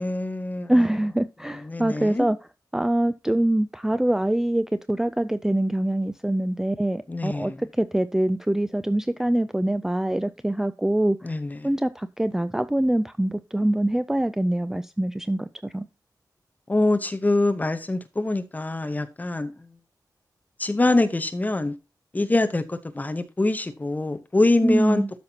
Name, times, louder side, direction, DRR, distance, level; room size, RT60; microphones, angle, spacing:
voice 1, 0.0-0.9 1.6-2.3 7.1-7.6 11.2-11.7 16.7-19.5 20.6-21.8 22.1-25.0, left 2 dB, 20° left, 0.9 m, -24 dB
voice 2, 0.7-2.4 2.7-11.4 11.6-15.9 24.6-25.1, right 1 dB, 5° right, 0.3 m, -24 dB
12.5 x 5.9 x 2.8 m
wide cardioid pair, 130°, 7 cm